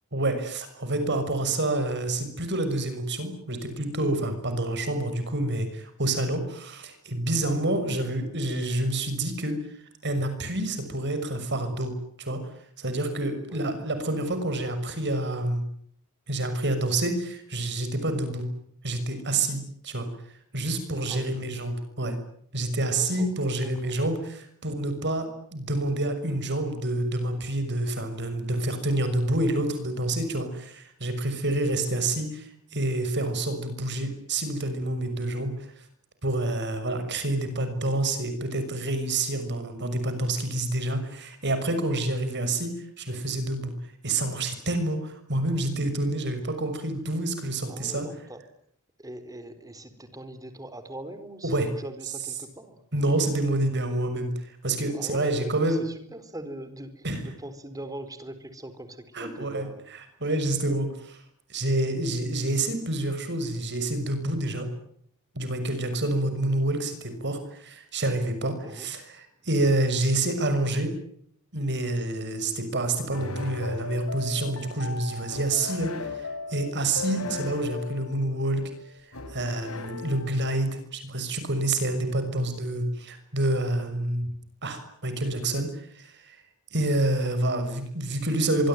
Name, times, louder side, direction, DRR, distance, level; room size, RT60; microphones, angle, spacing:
voice 1, 0.1-9.6 10.0-12.4 12.8-15.6 16.3-18.5 18.8-20.1 20.5-22.2 22.5-35.8 36.2-43.7 44.0-48.1 51.4-51.7 52.9-55.8 57.0-57.3 59.1-61.2 61.5-64.7 65.3-70.9 71.5-78.6 79.3-84.3 84.6-86.4 86.7-88.7, right 2 dB, 55° right, 9 dB, 6.4 m, -28 dB
voice 2, 21.1-21.5 23.0-23.3 23.6-23.9 47.7-48.4 49.0-52.8 54.9-59.8 68.6-68.9, right 1 dB, 15° right, 11 dB, 4.2 m, -41 dB
sound 1, 73.1-80.8, left 3 dB, 70° left, 5.6 m, -37 dB
24.5 x 24.5 x 9.4 m, 0.68 s
head